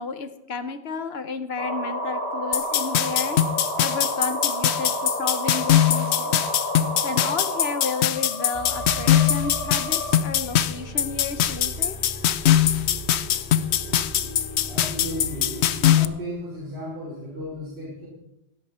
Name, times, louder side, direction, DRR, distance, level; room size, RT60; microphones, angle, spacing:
voice 1, 0.0-3.4 3.8-6.4 7.0-12.0, left 4 dB, 70° left, 11 dB, 1.2 m, -32 dB
sound 1, 1.6-10.2, equal, 45° left, 3.4 m, -30 dB
sound 2, 2.5-16.0, left 11 dB, 90° left, 0.9 m, -22 dB
sound 3, 8.5-16.0, right 2 dB, 55° right, 2.4 m, -38 dB
voice 2, 14.7-15.6 15.9-18.1, equal, 75° right, -7 dB, 4.7 m, -34 dB
17.0 x 12.0 x 4.3 m, 0.89 s
omnidirectional pair, 1.1 m